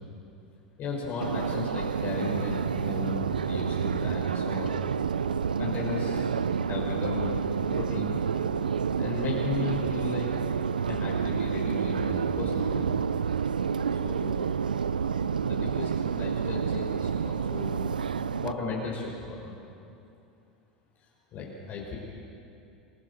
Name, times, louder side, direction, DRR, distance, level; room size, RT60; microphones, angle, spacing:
voice 1, 0.8-4.7 5.6-6.3 6.7-7.4 7.7-8.2 9.0-10.3 10.9-13.0 13.9-14.3 15.4-17.9 18.3-19.5 21.3-21.9, left 4 dB, 45° left, -4 dB, 5.9 m, -35 dB
Subway metro underground, 1.2-18.5, right 6 dB, 90° right, 0.5 m, -29 dB
28.0 x 19.0 x 7.0 m, 2.7 s
hypercardioid pair, 90°, 4 cm